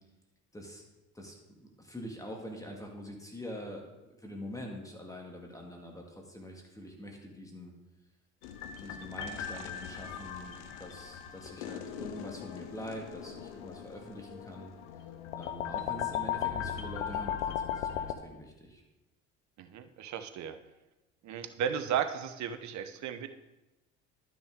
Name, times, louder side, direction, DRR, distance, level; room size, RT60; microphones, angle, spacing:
voice 1, 0.5-0.8 1.1-7.7 8.8-14.7 15.4-18.8, equal, 10° left, 0 dB, 1.9 m, -45 dB
sound 1, 8.4-18.1, left 9 dB, 85° left, 0.8 m, -38 dB
voice 2, 19.6-20.6 21.2-23.3, right 8 dB, 55° right, 9 dB, 0.8 m, -34 dB
12.0 x 6.1 x 3.6 m, 1.0 s
supercardioid pair, 75°, 35 cm